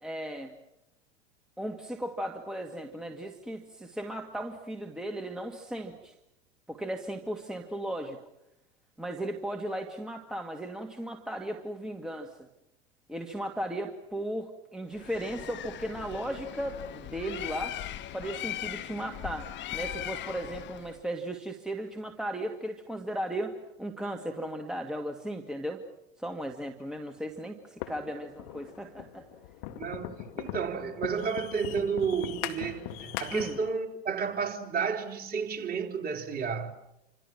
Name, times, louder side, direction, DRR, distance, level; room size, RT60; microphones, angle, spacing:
voice 1, 0.0-0.5 1.6-6.1 6.7-8.2 9.0-12.3 13.1-17.8 18.1-25.8 26.2-29.3 33.3-33.6, right 1 dB, ahead, 2.0 m, -36 dB
Bird, 14.9-21.0, left 12 dB, 35° left, 1.2 m, -39 dB
sound 1, 27.8-33.7, left 11 dB, 60° left, 2.2 m, -40 dB
voice 2, 29.8-36.7, right 6 dB, 25° right, 3.8 m, -32 dB
28.5 x 26.5 x 6.0 m
hypercardioid pair, 100°, 34 cm